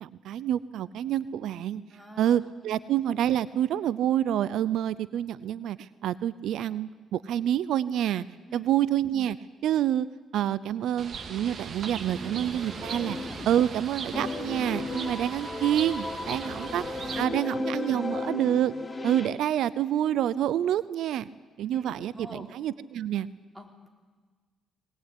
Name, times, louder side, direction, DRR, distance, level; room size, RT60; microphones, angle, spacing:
voice 1, 0.0-1.8 2.2-8.3 8.5-9.4 9.6-10.1 10.3-13.2 13.5-16.8 17.1-18.7 19.0-21.3 21.6-23.3, right 11 dB, 80° right, 17 dB, 0.6 m, -27 dB
voice 2, 1.9-2.3 8.5-8.7 12.1-12.4 16.4-17.4 21.6-22.5 23.5-23.9, right 1 dB, 5° right, 3 dB, 4.6 m, -45 dB
Bird, 11.0-17.2, right 5 dB, 50° right, 2.2 m, -39 dB
sound 1, 12.5-13.8 14.1-19.3, left 3 dB, 25° left, 2.8 m, -35 dB
21.0 x 19.5 x 9.9 m, 1.4 s
cardioid pair, 90°, 0 cm